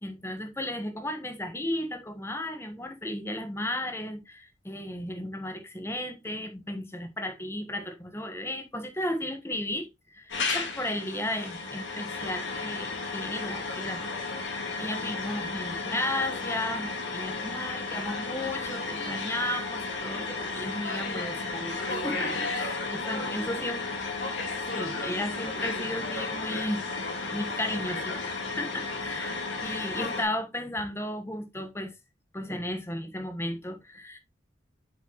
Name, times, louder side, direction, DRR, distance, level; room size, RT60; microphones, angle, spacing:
voice 1, 0.0-9.9 10.1-14.1 14.4-23.8 24.7-26.8 27.3-31.9 32.3-34.2, left 1 dB, 15° left, 1.2 m, -34 dB
sound 1, 10.3-30.2, left 3 dB, 85° left, 2.4 m, -33 dB
7.1 x 5.6 x 3.0 m
head